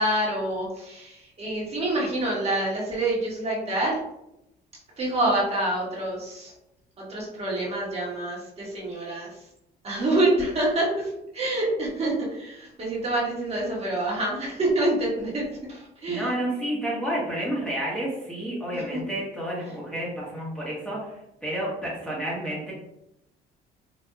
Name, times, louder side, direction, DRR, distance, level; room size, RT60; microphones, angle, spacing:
voice 1, 0.0-4.0 5.0-6.5 7.0-9.4 9.8-16.3 18.7-18.8, right 1 dB, 40° right, -5 dB, 1.3 m, -27 dB
voice 2, 16.1-22.7, right 1 dB, 5° left, -6 dB, 1.2 m, -30 dB
4.2 x 2.6 x 2.3 m, 0.84 s
cardioid pair, 110°, 17 cm